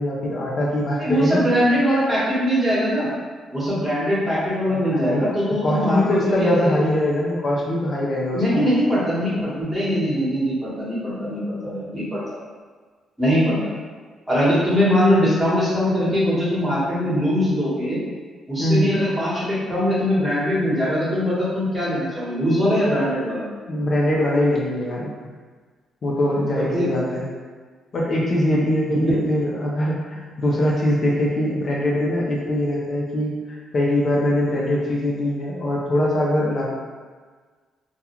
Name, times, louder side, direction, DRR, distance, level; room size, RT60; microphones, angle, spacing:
voice 1, 0.0-1.5 4.7-5.3 5.6-8.7 18.6-19.0 23.7-25.1 26.0-27.3 27.9-36.7, left 1 dB, 50° left, -4 dB, 0.5 m, -22 dB
voice 2, 1.0-3.1 3.5-6.8 8.3-12.2 13.2-13.7 14.3-18.0 18.5-23.4 26.7-26.9 28.9-29.0, equal, 20° right, -9 dB, 1.2 m, -21 dB
2.3 x 2.3 x 2.9 m, 1.5 s
cardioid pair, 90°, 0 cm